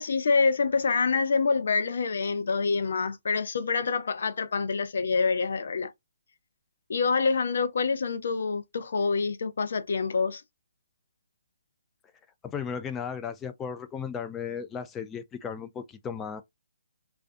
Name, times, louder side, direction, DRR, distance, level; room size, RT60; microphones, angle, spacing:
voice 1, 0.0-5.9 6.9-10.4, left 4 dB, 65° left, 0.5 m, -26 dB
voice 2, 12.4-16.4, left 7 dB, 15° left, 0.3 m, -35 dB
2.4 x 2.3 x 2.5 m
hypercardioid pair, 145°, 0 cm